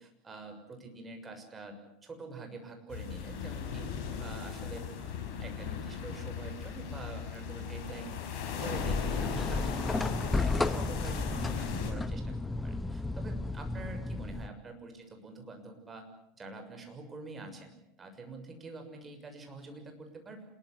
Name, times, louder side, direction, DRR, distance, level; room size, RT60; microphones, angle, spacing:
voice 1, 0.0-3.9 4.2-8.2 8.5-12.4 12.6-16.0 16.4-17.7 18.0-20.5, right 3 dB, 20° right, 5 dB, 6.5 m, -46 dB
sound 1, 2.9-11.9, left 7 dB, 50° left, 6.1 m, -38 dB
sound 2, 8.7-14.5, left 2 dB, 10° left, 1.3 m, -33 dB
27.0 x 22.0 x 8.3 m, 0.76 s
figure-of-eight pair, 75°, 0 cm